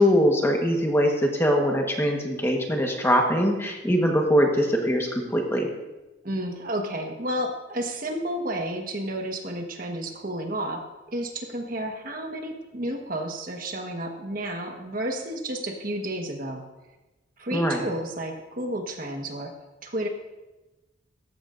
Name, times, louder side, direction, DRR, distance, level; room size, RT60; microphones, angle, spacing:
voice 1, 0.0-5.7 17.5-17.8, equal, 15° left, 1 dB, 1.3 m, -22 dB
voice 2, 6.2-16.7 17.4-19.6 19.8-20.1, right 1 dB, 45° right, 3 dB, 1.4 m, -31 dB
16.5 x 14.5 x 2.6 m, 1.1 s
head